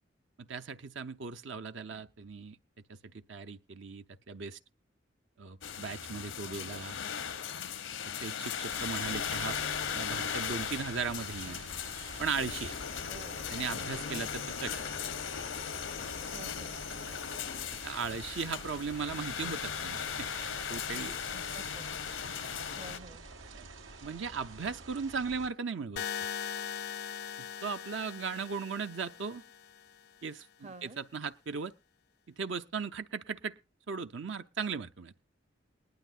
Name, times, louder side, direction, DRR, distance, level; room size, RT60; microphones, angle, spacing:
voice 1, 0.4-2.6 2.9-4.6 5.4-7.0 8.2-9.6 9.9-11.6 12.2-12.7 13.5-14.8 17.8-21.2 23.5-23.7 24.0-26.0 27.4-29.4 30.2-31.7 32.3-33.5 33.9-35.1, right 5 dB, 70° right, 0.7 m, -37 dB
sound 1, 5.6-23.0, left 7 dB, 80° left, 0.8 m, -38 dB
sound 2, 8.7-25.5, right 3 dB, 90° right, 2.1 m, -49 dB
voice 2, 13.1-13.4 16.3-16.8 21.3-22.0 22.8-23.3 30.6-31.0, right 3 dB, 35° right, 0.7 m, -50 dB
sound 3, 26.0-30.0, left 7 dB, 55° left, 0.5 m, -40 dB
20.0 x 11.5 x 2.5 m
head